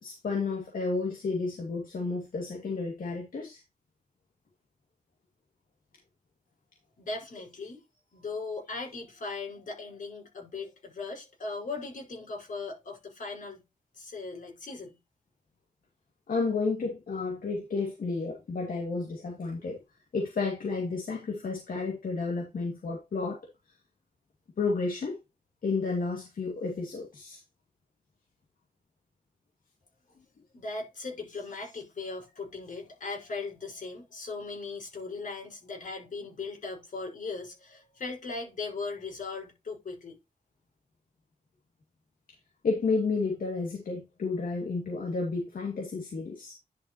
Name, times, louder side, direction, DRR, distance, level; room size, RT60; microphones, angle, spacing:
voice 1, 0.0-3.6 16.3-19.8 20.1-23.4 24.6-25.2 25.6-27.4 42.6-46.5, left 4 dB, 90° left, 2.3 m, -31 dB
voice 2, 7.0-7.8 8.1-13.7 13.9-15.0 30.5-40.2, left 3 dB, 70° left, 5.4 m, -38 dB
10.5 x 5.7 x 3.0 m
wide cardioid pair, 175°, 14 cm